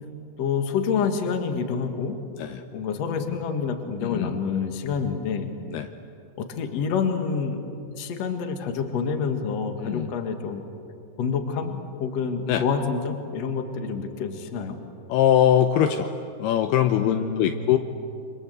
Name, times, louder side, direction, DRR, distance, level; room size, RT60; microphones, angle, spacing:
voice 1, 0.4-2.2 2.7-5.5 6.4-7.6 7.9-10.6 11.2-14.8 17.0-17.6, left 6 dB, 50° left, 5 dB, 2.3 m, -27 dB
voice 2, 4.0-4.3 5.7-5.9 9.8-10.1 12.5-12.6 15.1-16.1 16.4-17.8, left 10 dB, 75° left, 7 dB, 2.6 m, -22 dB
28.5 x 25.0 x 8.1 m, 2.7 s
omnidirectional pair, 4.9 m